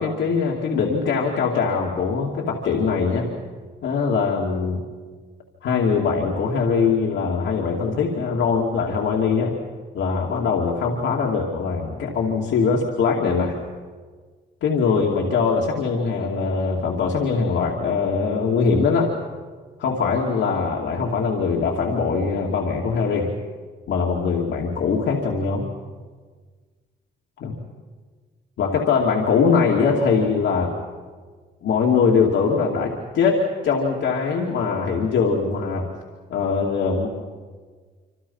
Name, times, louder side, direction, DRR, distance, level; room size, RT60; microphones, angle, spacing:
voice 1, 0.0-3.3 3.8-4.8 5.6-9.5 9.9-13.6 14.6-19.1 19.8-23.3 23.9-25.7 27.4-27.5 28.6-30.7 31.6-35.9 36.3-37.1, left 5 dB, 75° left, -2 dB, 2.6 m, -22 dB
26.5 x 26.0 x 5.6 m, 1.5 s
cardioid pair, 90°, 20 cm